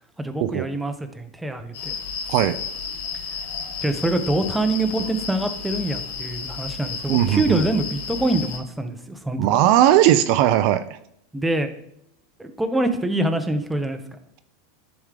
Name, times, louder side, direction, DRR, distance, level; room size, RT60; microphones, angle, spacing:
voice 1, 0.2-2.0 3.8-9.5 11.3-11.7 12.4-14.0, right 1 dB, 5° right, 7 dB, 0.6 m, -25 dB
sound 1, 1.7-8.6, left 6 dB, 80° left, 1.1 m, -32 dB
voice 2, 7.1-7.7 9.4-11.0, right 12 dB, 50° right, 12 dB, 0.4 m, -18 dB
10.5 x 3.6 x 3.3 m, 0.72 s
supercardioid pair, 155°, 0 cm